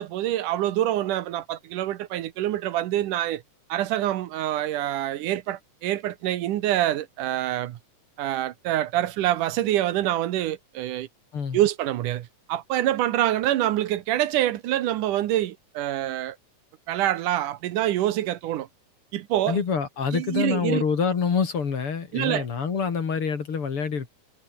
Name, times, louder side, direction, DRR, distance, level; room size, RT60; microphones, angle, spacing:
voice 1, 0.0-3.4 3.7-7.8 8.2-11.1 11.5-16.4 16.9-18.7 19.1-19.6 20.1-20.8 22.1-22.4, right 13 dB, 80° right, 2.6 m, -26 dB
voice 2, 19.5-24.1, left 6 dB, 45° left, 3.1 m, -26 dB
omnidirectional pair, 3.7 m